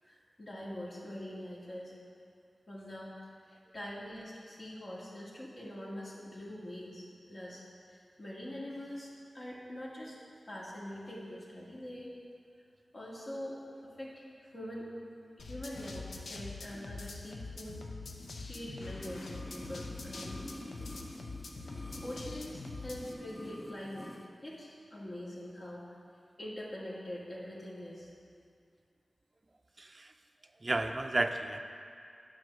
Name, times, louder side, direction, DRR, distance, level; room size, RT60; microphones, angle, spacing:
voice 1, 0.0-1.9 2.7-3.1 3.5-10.2 10.5-12.2 12.9-14.9 15.4-17.8 18.5-20.4 21.6-24.1 24.4-25.9 26.4-28.1, left 1 dB, 55° left, -6 dB, 1.9 m, -44 dB
sound 1, 15.4-23.1, left 3 dB, 85° left, 0.6 m, -44 dB
sound 2, 18.9-24.3 24.6-24.7, left 1 dB, 25° left, 0.5 m, -47 dB
voice 2, 29.8-30.1 30.6-31.6, right 2 dB, 40° right, 7 dB, 0.4 m, -32 dB
9.0 x 3.8 x 6.6 m, 2.3 s
cardioid pair, 50°, 0 cm